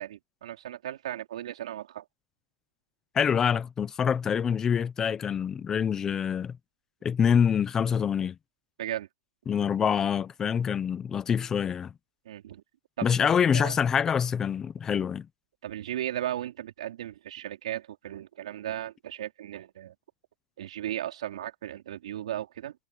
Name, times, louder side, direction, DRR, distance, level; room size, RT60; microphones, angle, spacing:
voice 1, 0.0-2.0 8.8-9.1 12.2-12.6 13.0-13.8 15.6-19.9 20.6-22.7, right 12 dB, 80° right, 4.4 m, -36 dB
voice 2, 3.1-6.5 7.0-8.4 9.5-11.9 13.0-15.3, left 7 dB, 15° left, 0.8 m, -26 dB
supercardioid pair, 165°, 3 cm